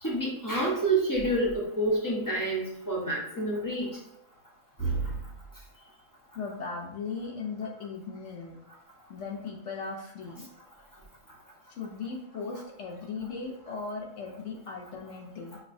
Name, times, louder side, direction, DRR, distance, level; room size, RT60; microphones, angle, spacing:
voice 1, 0.0-3.9 4.8-5.0, right 2 dB, 15° left, -5 dB, 0.7 m, -28 dB
voice 2, 6.3-8.6 9.1-10.5 11.7-15.6, left 4 dB, 60° left, -1 dB, 0.8 m, -38 dB
6.0 x 2.2 x 2.6 m, 0.82 s
omnidirectional pair, 1.6 m